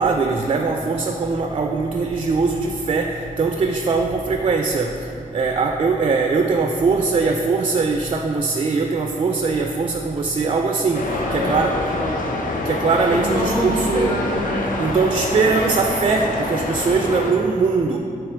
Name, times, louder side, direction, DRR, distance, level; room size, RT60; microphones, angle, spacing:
voice 1, 0.0-4.9 5.3-11.0 11.3-11.8 12.7-14.1 14.8-18.0, right 4 dB, 35° right, 4 dB, 0.3 m, -21 dB
sound 1, 10.9-17.3, left 2 dB, 65° left, 0.7 m, -26 dB
voice 2, 11.0-12.3 13.1-15.0, equal, 30° left, -10 dB, 1.3 m, -26 dB
6.5 x 3.4 x 6.0 m, 2.5 s
wide cardioid pair, 125°, 15 cm